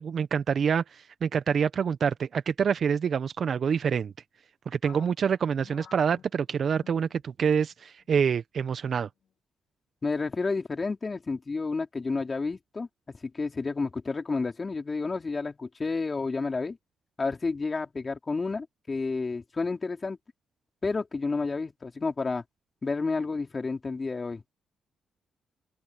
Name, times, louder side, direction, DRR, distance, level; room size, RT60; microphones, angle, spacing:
voice 1, 0.0-4.1 4.7-9.1, right 7 dB, 60° right, 1.0 m, -26 dB
sound 1, 4.8-7.7 8.0-8.2 8.8-9.3, left 8 dB, 65° left, 6.4 m, -53 dB
voice 2, 10.0-16.8 17.2-20.2 20.8-22.4 22.8-24.4, left 4 dB, 35° left, 4.5 m, -30 dB
open air
supercardioid pair, 55°, 0 cm